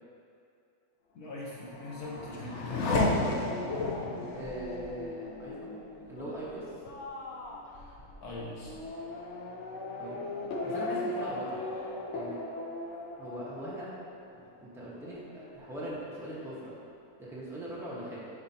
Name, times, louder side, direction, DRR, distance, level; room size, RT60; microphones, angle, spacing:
voice 1, 1.1-3.0 7.7-7.9 8.2-8.9, left 2 dB, 85° left, -5 dB, 1.7 m, -42 dB
Race car auto racing / Accelerating revving vroom, 1.4-14.7 15.0-15.7, left 2 dB, 60° left, 0.9 m, -35 dB
voice 2, 4.3-5.8 6.1-6.6 10.0-10.2 10.6-11.6 12.1-12.4 13.2-13.9 14.3-16.7 17.2-18.3, right 1 dB, ahead, -8 dB, 1.1 m, -41 dB
9.9 x 4.3 x 2.8 m, 2.4 s
omnidirectional pair, 1.6 m